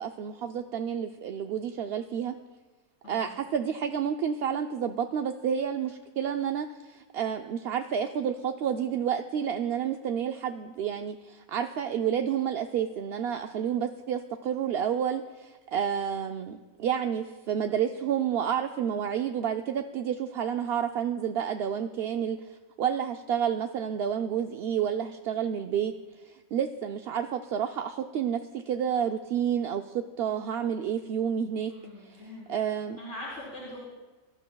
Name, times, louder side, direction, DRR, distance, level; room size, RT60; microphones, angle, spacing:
voice 1, 0.0-2.3 3.1-25.9 26.2-28.4 28.7-31.7 32.0-32.2 32.5-33.0, right 8 dB, 65° right, 5 dB, 0.7 m, -30 dB
voice 2, 3.0-3.4 31.7-32.5 33.0-33.8, left 1 dB, 65° left, -7 dB, 4.0 m, -42 dB
24.0 x 12.5 x 2.3 m, 1.2 s
omnidirectional pair, 1.4 m